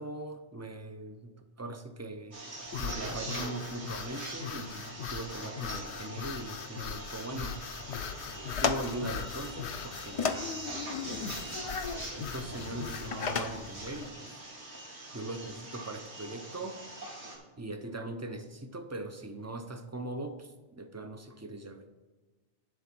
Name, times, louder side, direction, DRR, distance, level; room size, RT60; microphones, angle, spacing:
voice 1, 0.0-2.4 2.8-7.6 8.6-14.4 15.1-16.8 17.6-21.9, right 2 dB, 20° right, 7 dB, 0.5 m, -41 dB
sound 1, 2.3-17.4, right 2 dB, 70° right, 2.3 m, -43 dB
sound 2, 2.7-13.1, left 8 dB, 75° left, 0.9 m, -40 dB
sound 3, 7.8-14.1, left 5 dB, 45° left, 0.4 m, -37 dB
11.0 x 3.8 x 7.4 m, 1.3 s
omnidirectional pair, 1.2 m